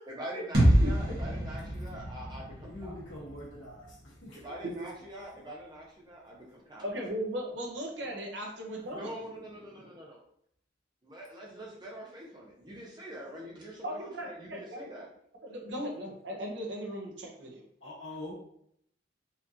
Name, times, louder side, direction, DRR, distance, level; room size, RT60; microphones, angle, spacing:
voice 1, 0.1-2.9 4.3-6.8 8.9-10.2 11.0-15.1, right 1 dB, 25° right, -3 dB, 0.8 m, -44 dB
sound 1, 0.5-4.4, equal, 55° right, 1.2 m, -28 dB
voice 2, 2.6-4.6 17.8-18.3, left 1 dB, 90° left, -4 dB, 1.5 m, -44 dB
voice 3, 6.8-9.1 13.8-14.9 15.4-17.6, equal, 75° right, -1 dB, 0.9 m, -37 dB
4.3 x 2.6 x 2.8 m, 0.71 s
head